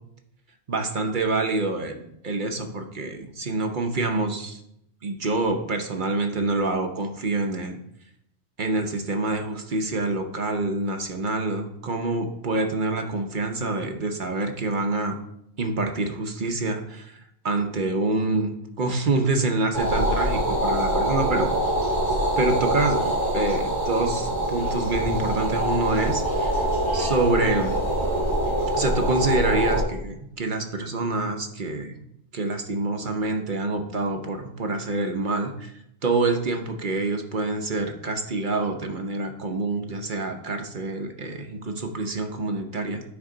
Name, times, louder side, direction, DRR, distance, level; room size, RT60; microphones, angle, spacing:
voice 1, 0.7-4.6 5.0-7.8 8.6-15.2 15.6-21.5 22.4-26.7 26.9-27.8 28.7-32.0 32.3-35.7 36.0-43.1, right 2 dB, 50° right, 5 dB, 0.8 m, -26 dB
sound 1, 19.7-29.8, right 1 dB, 15° right, 2.5 m, -24 dB
9.4 x 5.3 x 3.8 m, 0.77 s
omnidirectional pair, 1.2 m